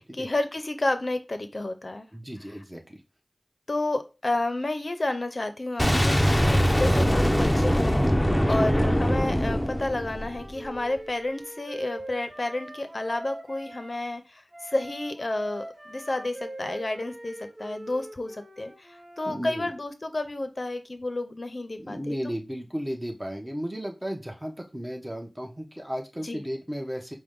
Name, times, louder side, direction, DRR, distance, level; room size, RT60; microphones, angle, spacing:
voice 1, 0.0-2.1 3.7-22.1 26.2-26.4, left 2 dB, 60° left, 8 dB, 0.6 m, -31 dB
voice 2, 2.1-3.0 8.3-8.7 19.2-19.7 21.8-27.2, equal, 20° right, 1 dB, 1.0 m, -34 dB
Boom, 5.8-10.7, equal, 10° left, 0.7 m, -22 dB
Wind instrument woodwind instrument, 9.3-13.9 14.5-19.4, right 1 dB, 50° right, 0.9 m, -42 dB
4.8 x 2.2 x 3.6 m, 0.28 s
wide cardioid pair, 40°, 0 cm